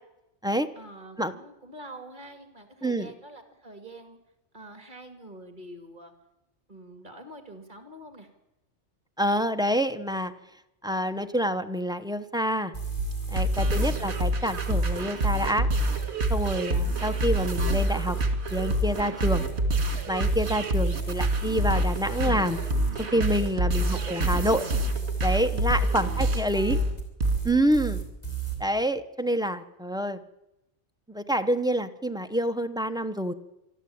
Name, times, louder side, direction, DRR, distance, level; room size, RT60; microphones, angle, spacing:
voice 1, 0.8-4.2 4.5-6.1 6.7-8.3 13.6-14.2 23.8-24.8 25.9-26.9, right 1 dB, 40° right, 7 dB, 2.6 m, -46 dB
voice 2, 9.2-10.3 10.8-12.7 13.3-15.7 16.3-18.2 18.5-19.4 20.1-22.6 23.1-24.7 25.2-26.8 27.4-28.0 28.6-30.2 31.1-33.3, equal, 5° right, 9 dB, 0.9 m, -27 dB
sound 1, 12.7-28.6, right 7 dB, 35° left, 4.7 m, -32 dB
sound 2, 13.0-27.4, right 1 dB, 65° right, 2.2 m, -27 dB
24.5 x 13.0 x 8.7 m, 0.92 s
omnidirectional pair, 1.2 m